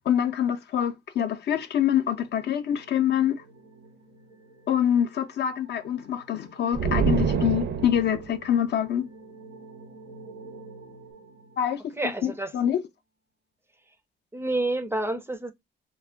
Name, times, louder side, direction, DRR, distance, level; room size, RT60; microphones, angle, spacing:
voice 1, 0.1-3.4 4.7-9.0 11.6-11.8 12.2-12.8, left 9 dB, 60° left, 0.5 m, -25 dB
sound 1, 1.8-12.3, right 3 dB, 90° right, 1.0 m, -49 dB
sound 2, 6.7-8.3, right 6 dB, 70° right, 0.6 m, -25 dB
voice 2, 12.0-12.5 14.3-15.5, right 2 dB, 10° right, 0.4 m, -28 dB
2.3 x 2.1 x 3.4 m
cardioid pair, 90°, 20 cm